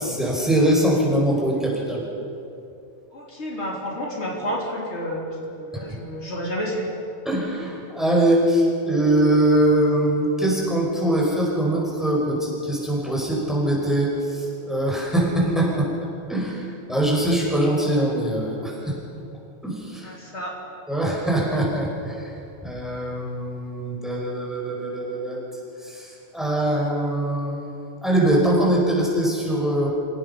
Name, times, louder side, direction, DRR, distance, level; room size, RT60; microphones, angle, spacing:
voice 1, 0.0-2.0 5.7-5.8 7.2-15.9 16.3-16.6 16.9-19.0 19.6-20.1 20.9-22.2 22.6-25.4 25.8-26.1 26.3-29.9, right 1 dB, ahead, -3 dB, 5.1 m, -22 dB
voice 2, 3.1-6.9 20.0-20.6, equal, 75° left, -3 dB, 3.7 m, -30 dB
28.5 x 17.0 x 5.6 m, 2.7 s
omnidirectional pair, 1.1 m